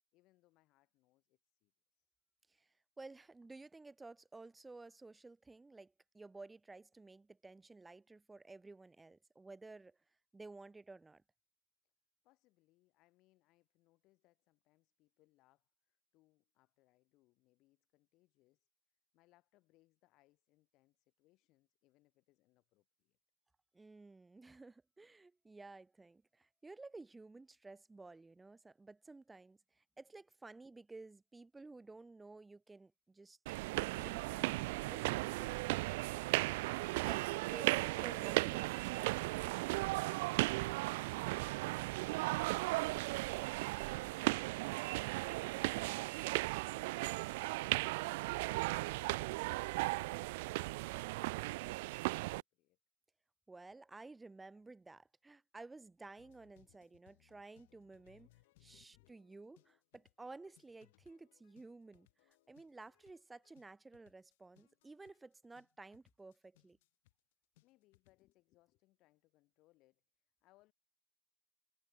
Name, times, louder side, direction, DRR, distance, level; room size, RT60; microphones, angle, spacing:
voice 1, 0.1-2.1 11.8-11.9 12.2-23.2 39.9-51.2 51.6-52.8 56.8-57.0 58.6-59.2 59.5-59.6 67.6-70.7, left 19 dB, 30° left, 6.2 m, -73 dB
voice 2, 3.0-10.0 10.3-11.2 23.7-35.6 37.0-39.3 53.5-58.3 58.6-66.8, right 3 dB, 5° right, 0.8 m, -54 dB
sound 1, 33.5-52.4, right 22 dB, 45° right, 0.5 m, -36 dB
sound 2, 56.2-68.3, left 20 dB, 50° left, 4.9 m, -71 dB
supercardioid pair, 155°, 0 cm